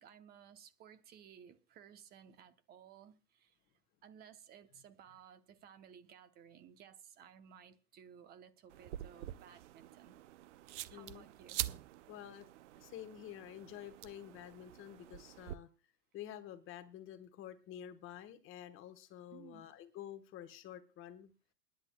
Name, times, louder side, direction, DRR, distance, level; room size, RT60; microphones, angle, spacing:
voice 1, 0.0-3.6 4.0-10.2 10.9-11.6 19.3-19.8, right 8 dB, 20° right, 0.8 m, -58 dB
sound 1, 8.7-15.6, right 13 dB, 50° right, 0.6 m, -46 dB
voice 2, 10.9-11.3 12.1-12.5 12.8-15.7 16.1-21.3, left 11 dB, 25° left, 1.2 m, -49 dB
28.5 x 10.5 x 2.2 m
hypercardioid pair, 125°, 47 cm